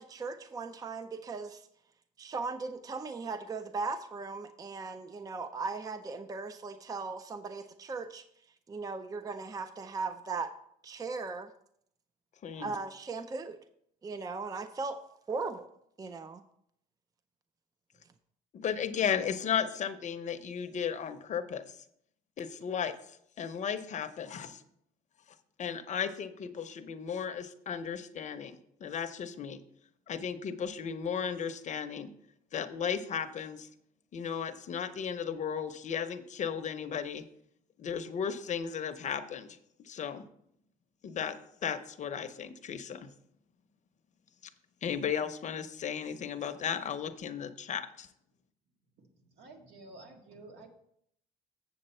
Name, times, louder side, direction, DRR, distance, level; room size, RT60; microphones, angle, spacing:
voice 1, 0.0-1.7 2.2-8.2 8.7-10.5 10.8-11.5 12.6-13.6 14.0-15.0 15.3-15.7 16.0-16.4, right 4 dB, 20° right, 10 dB, 0.5 m, -38 dB
voice 2, 12.4-12.7 18.5-21.8 22.4-24.6 25.6-29.6 30.1-32.1 32.5-33.7 34.1-37.2 37.8-39.5 39.8-40.3 41.0-41.4 41.6-43.1 44.8-48.1, left 7 dB, 45° left, 9 dB, 0.8 m, -35 dB
voice 3, 49.3-50.7, right 2 dB, 75° right, 2 dB, 1.8 m, -51 dB
7.9 x 7.2 x 4.4 m, 0.71 s
cardioid pair, 110°, 17 cm